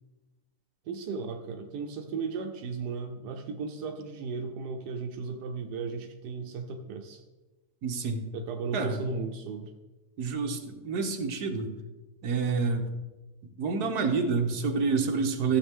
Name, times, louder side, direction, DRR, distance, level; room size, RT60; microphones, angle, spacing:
voice 1, 0.9-7.2 8.3-9.7, right 5 dB, 90° right, 4 dB, 1.4 m, -35 dB
voice 2, 7.8-8.2 8.7-9.0 10.2-11.7 12.2-12.9 13.6-15.6, right 4 dB, 70° right, 4 dB, 1.6 m, -28 dB
14.0 x 7.4 x 3.6 m, 1.2 s
omnidirectional pair, 1.7 m